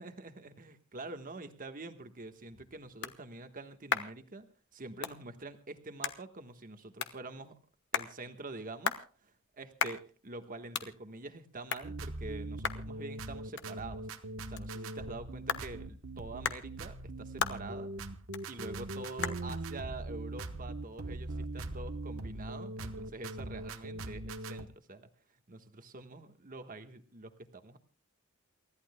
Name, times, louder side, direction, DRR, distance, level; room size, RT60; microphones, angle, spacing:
voice 1, 0.0-4.5 4.7-7.5 7.9-9.0 9.2-14.0 14.5-17.9 18.5-25.1 25.5-27.8, right 2 dB, 40° right, 8 dB, 1.3 m, -46 dB
sound 1, 2.1-21.4, left 7 dB, 60° left, 1.1 m, -41 dB
sound 2, 11.8-24.6, right 2 dB, 70° right, 1.1 m, -41 dB
29.0 x 14.5 x 2.2 m, 0.39 s
head